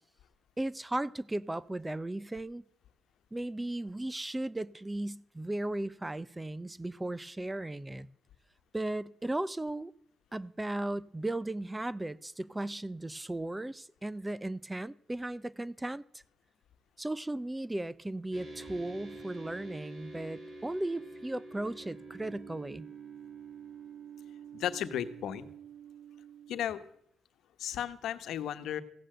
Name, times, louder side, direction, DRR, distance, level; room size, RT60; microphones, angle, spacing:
voice 1, 0.6-2.6 3.3-8.1 8.7-9.9 10.3-16.0 17.0-22.9, right 1 dB, 10° right, 0.4 m, -36 dB
sound 1, 18.3-26.6, right 4 dB, 40° right, 4.0 m, -47 dB
voice 2, 24.5-25.5 26.5-26.8 27.6-28.8, left 10 dB, 75° left, 1.1 m, -34 dB
15.5 x 8.9 x 7.7 m
cardioid pair, 90°, 0 cm